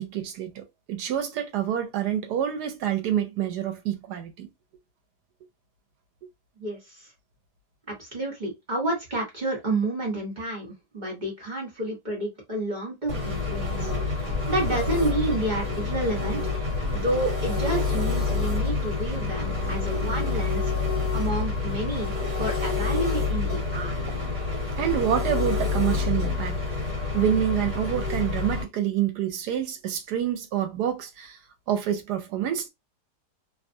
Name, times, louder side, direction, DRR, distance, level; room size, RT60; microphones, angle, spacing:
voice 1, 0.0-4.5 24.8-26.6 27.1-31.3 31.7-32.7, right 10 dB, 75° right, 1.2 m, -27 dB
voice 2, 7.9-13.9 14.2-16.5 16.9-20.7 21.1-24.0, right 2 dB, 30° right, 1.0 m, -30 dB
Engine, 13.1-28.6, left 4 dB, 50° right, 1.4 m, -27 dB
2.9 x 2.3 x 2.6 m
omnidirectional pair, 1.8 m